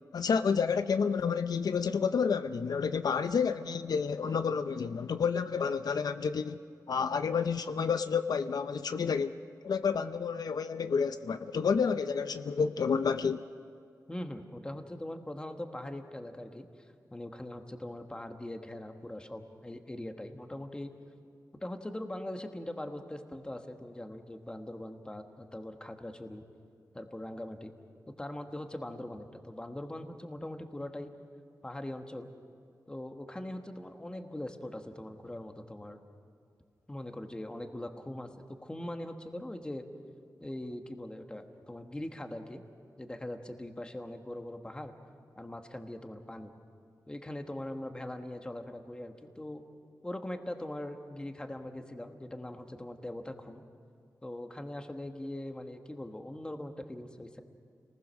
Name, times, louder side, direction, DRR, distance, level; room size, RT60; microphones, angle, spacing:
voice 1, 0.1-6.6 6.9-13.4, left 6 dB, 75° left, 10 dB, 0.6 m, -30 dB
voice 2, 14.1-16.6 17.1-20.9 21.6-26.4 26.9-27.7 28.2-31.1 31.6-32.3 32.9-36.0 36.9-38.3 38.6-39.8 40.4-42.6 43.0-44.9 45.4-46.5 47.1-49.6 50.0-53.6 54.2-57.4, left 1 dB, 15° left, 5 dB, 1.3 m, -41 dB
30.0 x 20.0 x 6.3 m, 2.3 s
wide cardioid pair, 155°, 7 cm